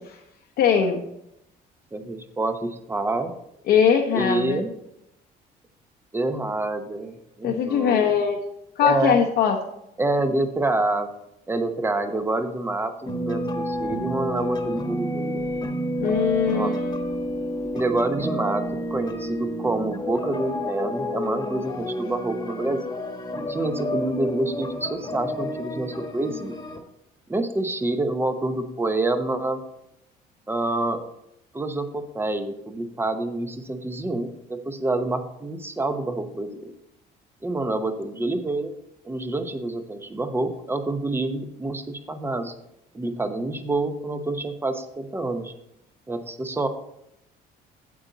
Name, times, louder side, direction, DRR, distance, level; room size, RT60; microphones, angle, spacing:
voice 1, 0.6-1.0 3.7-4.6 7.4-8.4 8.8-9.6 16.0-16.8, left 7 dB, 80° left, 2 dB, 1.0 m, -21 dB
voice 2, 1.9-3.3 4.1-4.7 6.1-8.2 8.8-9.2 10.0-11.1 11.5-15.4 16.5-16.7 17.7-22.8 23.5-26.6 27.3-29.6 30.5-31.0 31.5-36.6 37.4-38.7 39.0-42.5 42.9-45.5 46.1-46.7, right 2 dB, 15° right, 8 dB, 0.9 m, -27 dB
sound 1, 13.1-26.8, equal, 25° left, 1.4 m, -30 dB
8.7 x 8.0 x 4.0 m, 0.82 s
cardioid pair, 110°, 17 cm